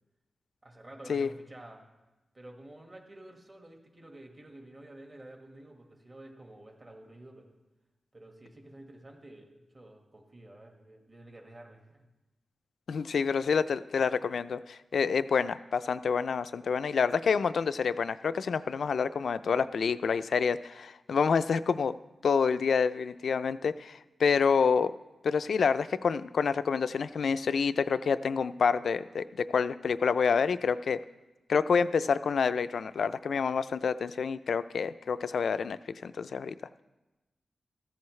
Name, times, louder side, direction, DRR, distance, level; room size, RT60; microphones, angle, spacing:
voice 1, 0.6-1.8 2.3-7.6 8.1-12.0, right 1 dB, 30° right, 2 dB, 1.7 m, -50 dB
voice 2, 12.9-21.9 22.2-24.9 25.2-31.0 31.5-36.5, left 6 dB, 70° left, 14 dB, 0.4 m, -28 dB
14.0 x 14.0 x 3.2 m, 1.1 s
wide cardioid pair, 140°, 0 cm